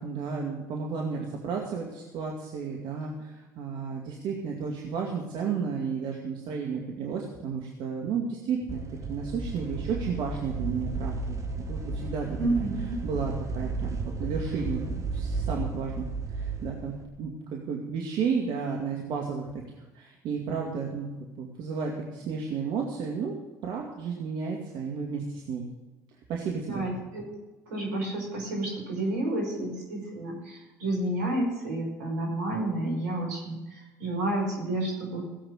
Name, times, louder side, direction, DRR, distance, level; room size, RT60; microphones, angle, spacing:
voice 1, 0.0-8.8 9.1-12.7 13.0-16.0 16.3-19.5 19.9-21.1 21.4-23.4 23.6-25.7 26.3-26.9, right 5 dB, 60° right, 0 dB, 2.3 m, -32 dB
sound 1, 8.7-17.0, right 3 dB, 35° right, 2.6 m, -33 dB
voice 2, 12.4-13.0 26.7-27.3 27.7-35.2, right 1 dB, 80° right, 0 dB, 5.4 m, -30 dB
17.5 x 8.0 x 6.4 m, 1.1 s
hypercardioid pair, 65°, 9 cm